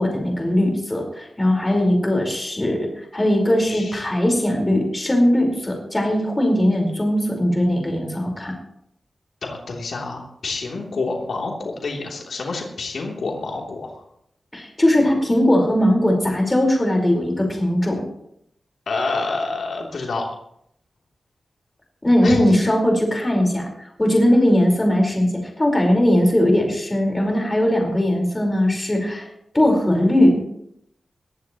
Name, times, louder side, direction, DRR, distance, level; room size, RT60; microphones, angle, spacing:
voice 1, 0.0-8.5 14.5-18.1 22.0-29.3 29.5-30.4, left 1 dB, 20° left, 1 dB, 4.7 m, -19 dB
voice 2, 3.7-4.1 9.4-14.0 18.9-20.2 22.2-22.4, left 3 dB, 85° left, -1 dB, 3.2 m, -28 dB
21.0 x 15.0 x 3.1 m, 0.74 s
wide cardioid pair, 145°, 0 cm